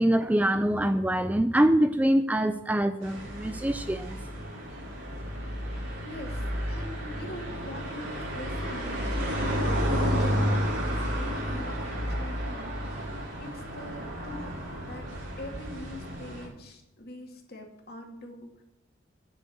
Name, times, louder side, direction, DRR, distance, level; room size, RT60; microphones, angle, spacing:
voice 1, 0.0-4.2, right 1 dB, 10° right, 9 dB, 0.4 m, -24 dB
sound 1, 3.0-16.5, equal, 70° right, 5.3 m, -31 dB
voice 2, 6.0-15.1 15.4-18.5, equal, 50° left, 2 dB, 2.4 m, -44 dB
10.0 x 6.5 x 7.9 m, 0.89 s
head